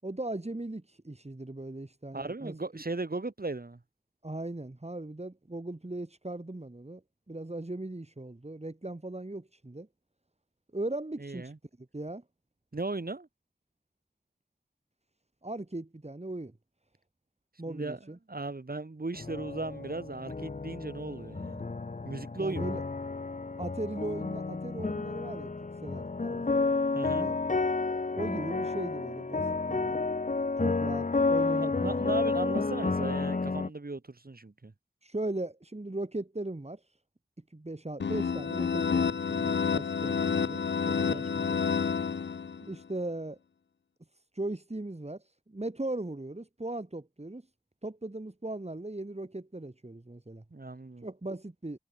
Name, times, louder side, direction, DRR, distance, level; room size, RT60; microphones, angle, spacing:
voice 1, 0.0-2.8 4.2-7.0 7.3-9.9 10.7-11.5 11.8-12.2 15.4-16.6 17.6-18.2 22.4-22.8 23.6-26.6 27.2-27.4 28.1-30.0 30.6-31.9 35.0-36.8 37.5-41.6 42.6-43.4 44.3-47.4 47.8-50.4 51.0-51.8, right 2 dB, 35° right, 5.0 m, -38 dB
voice 2, 2.1-3.8 11.2-11.6 12.7-13.3 17.7-18.0 18.3-21.6 22.0-22.7 26.9-27.4 31.6-34.7 41.0-41.4 50.5-51.1, right 3 dB, 55° right, 3.7 m, -37 dB
sound 1, 19.1-33.7, left 3 dB, 45° left, 0.9 m, -31 dB
sound 2, 38.0-42.7, left 6 dB, 75° left, 0.6 m, -29 dB
wide cardioid pair, 45°, 18 cm